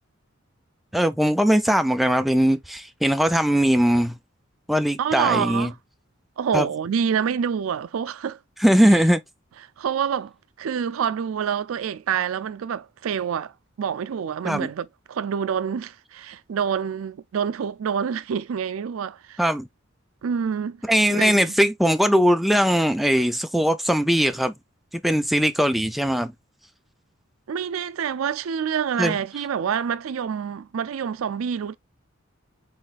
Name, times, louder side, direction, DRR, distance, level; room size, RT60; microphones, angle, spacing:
voice 1, 0.9-4.2 4.7-5.7 6.5-6.7 8.6-9.2 14.4-14.7 19.4-19.7 20.9-24.5 25.0-26.3 29.0-29.2, equal, ahead, 0.4 m, -20 dB
voice 2, 5.0-5.7 6.4-8.4 8.9-9.0 9.8-10.3 10.6-19.4 20.2-20.8 21.1-21.4 27.5-31.8, right 7 dB, 90° right, 0.4 m, -27 dB
4.1 x 3.9 x 2.4 m
head